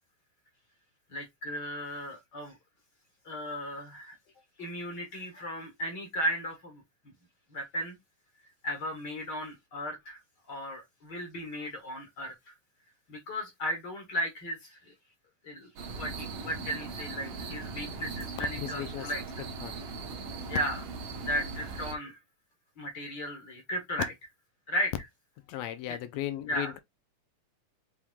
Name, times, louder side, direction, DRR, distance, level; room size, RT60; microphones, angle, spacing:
voice 1, 1.1-2.6 3.2-4.2 4.6-6.8 7.5-8.0 8.6-10.2 10.5-12.5 13.1-14.9 15.4-19.2 20.5-20.8 21.2-22.2 22.8-24.1 24.7-24.9 25.9-26.0 26.5-26.7, equal, 45° left, 1.6 m, -35 dB
sound 1, 15.8-21.9, right 4 dB, 60° right, 1.8 m, -39 dB
voice 2, 18.5-19.1 19.6-19.8 25.5-26.8, left 13 dB, 85° left, 1.5 m, -36 dB
6.0 x 3.5 x 2.3 m
omnidirectional pair, 3.6 m